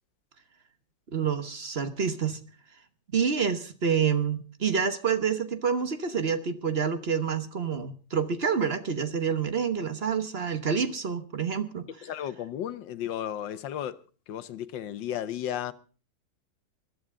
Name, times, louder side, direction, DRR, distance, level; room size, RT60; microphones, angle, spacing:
voice 1, 1.1-2.4 3.1-11.9, right 6 dB, 40° right, 1.1 m, -28 dB
voice 2, 12.0-14.0 14.3-15.7, left 10 dB, 70° left, 1.5 m, -34 dB
21.5 x 12.5 x 3.7 m
omnidirectional pair, 2.1 m